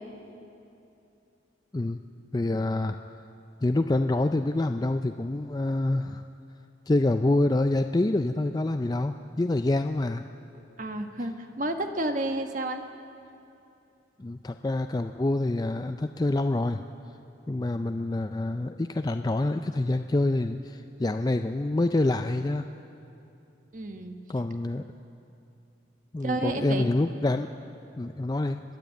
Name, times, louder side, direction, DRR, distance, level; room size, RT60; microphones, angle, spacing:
voice 1, 2.3-3.0 3.6-6.2 6.9-10.3 14.2-16.8 17.5-22.7 24.3-24.8 26.1-27.5 28.0-28.6, left 2 dB, 20° left, 7 dB, 0.4 m, -26 dB
voice 2, 10.8-12.8 23.7-24.1 26.2-26.9, right 1 dB, 45° right, 6 dB, 1.3 m, -31 dB
30.0 x 10.5 x 8.4 m, 2.7 s
head